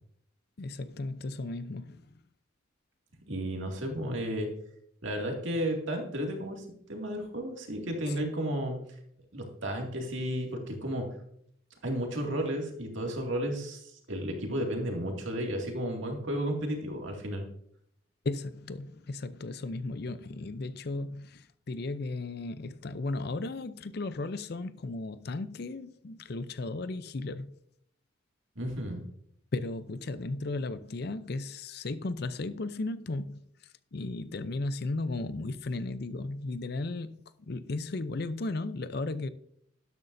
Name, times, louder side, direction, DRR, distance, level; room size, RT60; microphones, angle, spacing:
voice 1, 0.6-2.0 18.2-27.5 29.5-33.4 33.9-37.1 37.5-39.3, left 2 dB, 55° left, 0.5 m, -35 dB
voice 2, 3.3-4.5 5.0-8.8 9.3-11.1 11.8-17.4 28.6-29.0, equal, 75° right, 2.3 m, -33 dB
12.5 x 10.5 x 2.7 m
head